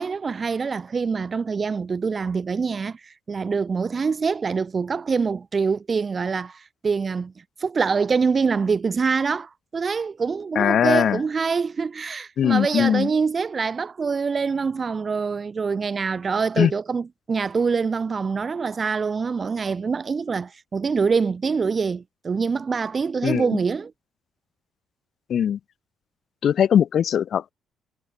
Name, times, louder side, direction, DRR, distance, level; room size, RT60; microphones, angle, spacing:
voice 1, 0.0-7.3 7.6-23.9, right 5 dB, 35° right, 2.7 m, -25 dB
voice 2, 10.6-11.2 12.4-13.1 16.6-16.7 23.2-23.6 25.3-25.6 26.4-27.5, left 9 dB, 55° left, 3.6 m, -20 dB
figure-of-eight pair, 45°, 0 cm